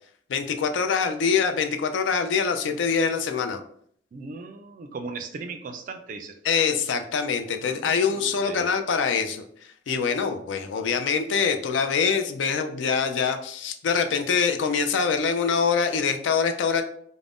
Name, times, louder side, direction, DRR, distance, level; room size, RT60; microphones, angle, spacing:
voice 1, 0.3-3.6 6.4-16.8, left 6 dB, 70° left, 8 dB, 0.3 m, -24 dB
voice 2, 4.1-6.4 7.6-8.7, right 4 dB, 45° right, 6 dB, 0.3 m, -38 dB
2.5 x 2.1 x 3.4 m, 0.63 s
head